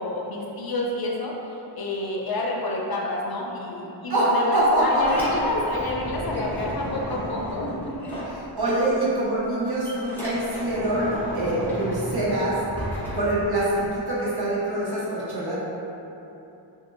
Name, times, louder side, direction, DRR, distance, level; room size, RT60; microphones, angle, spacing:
voice 1, 0.0-8.0 8.6-8.7, left 2 dB, 50° left, -2 dB, 0.6 m, -28 dB
voice 2, 4.1-5.3 8.6-12.5 13.1-15.6, right 1 dB, 55° right, -7 dB, 1.0 m, -24 dB
Sliding door, 4.6-8.9 9.2-14.0, equal, 5° left, 1.0 m, -34 dB
3.6 x 2.6 x 2.5 m, 3.0 s
cardioid pair, 70°, 47 cm